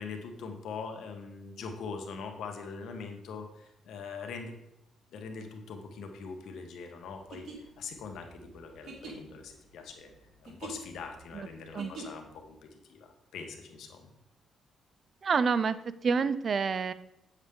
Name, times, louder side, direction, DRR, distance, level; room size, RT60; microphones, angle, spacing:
voice 1, 0.0-4.5 5.1-10.1 10.4-14.1, left 5 dB, 75° left, 4 dB, 1.4 m, -42 dB
sound 1, 7.3-12.4, right 4 dB, 65° right, 2.3 m, -46 dB
voice 2, 15.2-15.8 16.0-16.9, right 5 dB, 45° right, 15 dB, 0.4 m, -27 dB
8.3 x 7.2 x 3.8 m, 0.83 s
cardioid pair, 90°, 0 cm